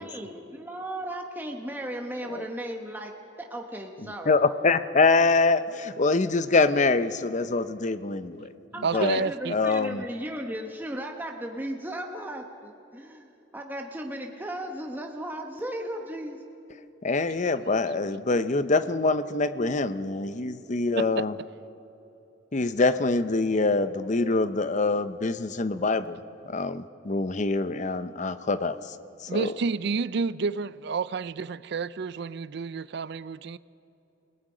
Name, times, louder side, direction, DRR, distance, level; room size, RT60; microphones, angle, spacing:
voice 1, 0.0-4.3 8.7-16.4, right 1 dB, 10° right, 1.1 m, -36 dB
voice 2, 4.2-8.5 8.9-10.0 17.0-21.3 22.5-26.2 26.5-28.9 29.3-29.5, left 3 dB, 40° left, 0.7 m, -25 dB
voice 3, 8.8-9.5 21.0-21.2 29.3-33.6, right 5 dB, 60° right, 0.4 m, -30 dB
29.0 x 18.5 x 5.0 m
head